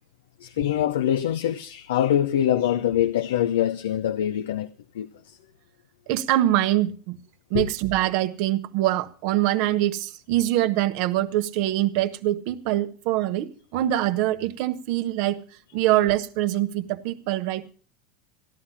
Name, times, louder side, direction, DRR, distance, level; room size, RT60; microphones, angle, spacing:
voice 1, 0.4-4.7 4.9-5.4 7.5-7.7, left 11 dB, 75° left, 0.6 m, -24 dB
voice 2, 6.1-7.2 7.5-15.4 15.7-17.6, right 14 dB, 60° right, 1.0 m, -24 dB
15.0 x 11.0 x 5.6 m
hypercardioid pair, 90°, 0 cm